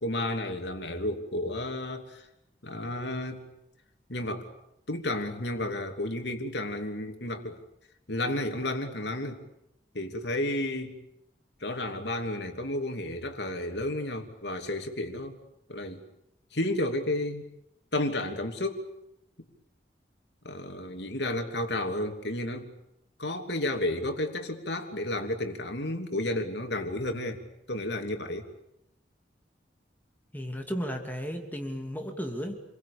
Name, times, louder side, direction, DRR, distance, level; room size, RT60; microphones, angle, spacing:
voice 1, 0.0-2.3 2.6-3.4 4.1-4.5 4.9-7.6 8.1-9.4 9.9-11.0 11.6-15.4 15.7-16.0 16.5-17.5 17.9-18.8 20.4-22.7 23.2-27.4 27.7-28.5, left 1 dB, 75° left, 5 dB, 3.0 m, -32 dB
voice 2, 30.3-32.6, equal, 10° left, 3 dB, 2.8 m, -34 dB
28.5 x 22.5 x 8.7 m, 0.80 s
head